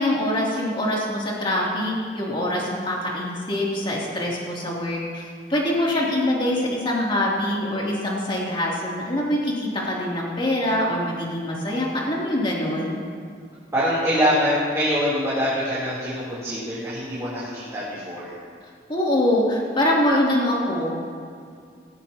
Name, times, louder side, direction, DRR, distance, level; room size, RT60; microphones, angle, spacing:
voice 1, 0.0-13.0 18.9-21.0, left 1 dB, 30° left, -4 dB, 3.0 m, -24 dB
voice 2, 13.7-18.3, equal, 15° right, -10 dB, 3.5 m, -24 dB
17.5 x 16.0 x 3.0 m, 2.2 s
head